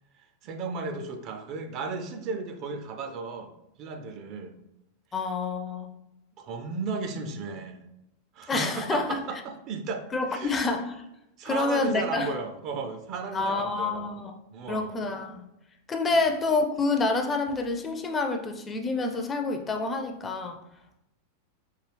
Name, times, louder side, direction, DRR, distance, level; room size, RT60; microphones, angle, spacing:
voice 1, 0.1-4.5 6.4-7.8 8.3-10.7 11.4-14.2 14.5-15.0, right 4 dB, 40° right, 6 dB, 0.5 m, -35 dB
voice 2, 5.1-5.9 8.5-9.2 10.1-10.9 11.4-12.3 13.3-14.3 14.7-15.4 15.9-20.6, left 3 dB, 20° left, 4 dB, 0.5 m, -27 dB
4.6 x 2.3 x 3.3 m, 0.87 s
figure-of-eight pair, 90°, 0 cm